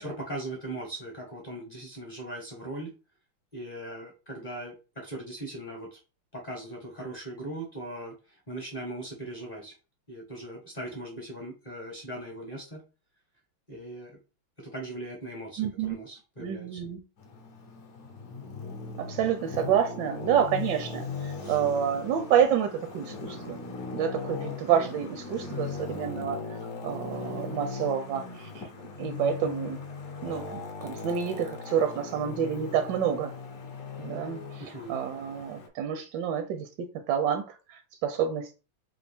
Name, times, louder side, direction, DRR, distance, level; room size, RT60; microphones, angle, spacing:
voice 1, 0.0-2.9 3.5-6.0 6.3-9.7 10.1-12.8 13.7-14.2 14.6-16.8 21.4-21.6 25.4-25.9 34.6-35.0, right 1 dB, 40° left, 0.6 m, -39 dB
voice 2, 15.6-16.0 16.4-17.0 19.0-23.6 23.9-26.4 26.8-28.7 29.0-29.8 30.2-33.3 34.0-34.6 34.9-38.5, right 8 dB, 75° right, 1.0 m, -28 dB
Traffic noise roadway noise, 17.2-35.7, left 4 dB, 65° left, 0.9 m, -39 dB
4.3 x 2.4 x 3.4 m
omnidirectional pair, 2.3 m